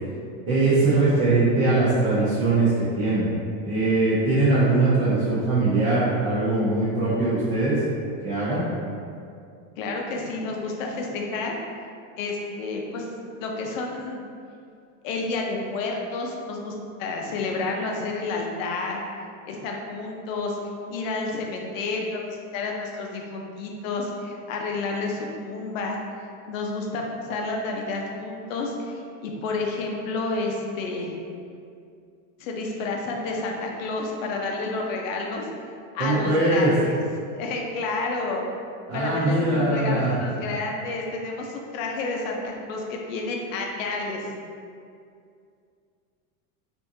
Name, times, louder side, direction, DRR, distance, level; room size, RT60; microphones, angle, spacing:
voice 1, 0.5-3.3 3.6-7.8 8.2-8.6 36.0-36.7 38.9-40.1, right 2 dB, 35° right, -11 dB, 0.6 m, -21 dB
voice 2, 9.8-11.5 12.2-13.1 13.4-14.2 15.0-16.7 17.0-19.0 19.5-20.6 20.9-26.0 26.5-27.0 27.3-31.2 32.4-35.5 35.9-36.9 37.3-38.5 38.9-44.3, left 3 dB, 75° left, 0 dB, 0.7 m, -30 dB
3.5 x 2.6 x 2.7 m, 2.4 s
supercardioid pair, 175°, 39 cm